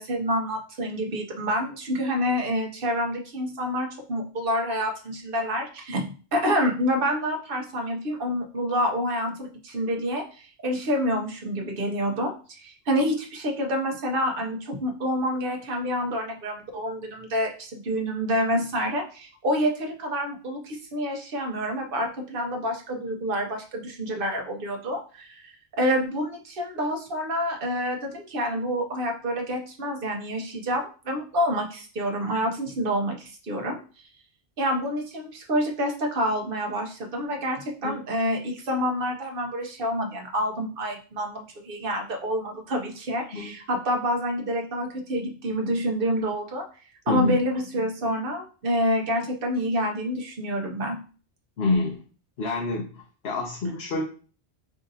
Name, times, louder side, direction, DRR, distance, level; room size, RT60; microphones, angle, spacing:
voice 1, 0.0-33.8 34.6-46.7 47.1-51.0, equal, 55° right, 2 dB, 1.1 m, -28 dB
voice 2, 47.1-47.4 51.6-52.0 52.4-54.0, left 3 dB, 65° left, 0 dB, 1.0 m, -27 dB
4.9 x 2.6 x 4.0 m, 0.38 s
omnidirectional pair, 1.1 m